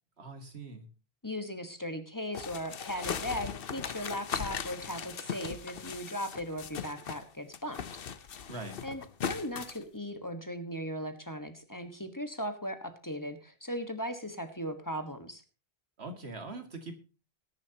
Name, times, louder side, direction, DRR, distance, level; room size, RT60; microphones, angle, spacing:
voice 1, 0.2-0.9 8.5-8.8 16.0-17.0, right 2 dB, 90° right, 6 dB, 2.3 m, -42 dB
voice 2, 1.2-8.0 8.8-15.4, equal, 20° left, 8 dB, 1.4 m, -38 dB
sound 1, 2.3-7.3 7.5-9.8, left 7 dB, 65° left, 1.0 m, -38 dB
19.5 x 10.5 x 2.9 m, 0.32 s
omnidirectional pair, 1.1 m